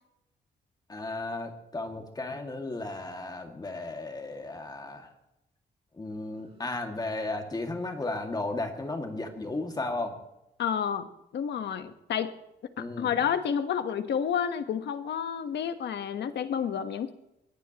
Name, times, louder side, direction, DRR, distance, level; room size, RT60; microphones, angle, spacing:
voice 1, 0.9-5.1 6.0-10.2 12.8-13.2, left 2 dB, 20° left, 4 dB, 2.2 m, -34 dB
Motorcycle, 6.0-10.3, right 3 dB, 35° right, 4.9 m, -58 dB
voice 2, 10.6-11.1 11.3-12.3 12.8-17.1, left 8 dB, 75° left, 9 dB, 1.3 m, -30 dB
22.0 x 18.0 x 3.0 m, 0.88 s
cardioid pair, 125°, 18 cm